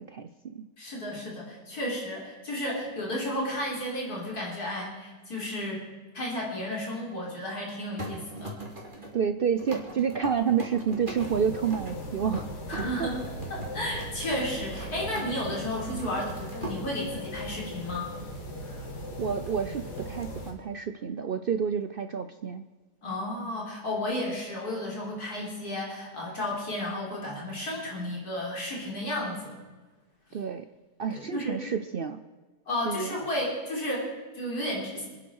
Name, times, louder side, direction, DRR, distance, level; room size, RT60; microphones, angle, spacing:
voice 1, 0.0-0.7 9.1-12.5 13.0-13.1 19.2-22.6 30.3-30.7 31.0-32.2 32.8-33.2, right 7 dB, 75° right, 9 dB, 0.5 m, -29 dB
voice 2, 0.8-5.9 6.1-8.5 12.7-13.2 13.5-18.1 23.0-29.6 31.1-31.6 32.7-35.0, left 1 dB, 65° left, -3 dB, 4.3 m, -33 dB
sound 1, 8.0-15.5 15.8-16.8 19.5-20.2, right 1 dB, 30° right, 2.6 m, -40 dB
sound 2, 11.1-20.5, equal, 80° left, 3.0 m, -38 dB
27.5 x 10.0 x 4.7 m, 1.3 s
omnidirectional pair, 1.7 m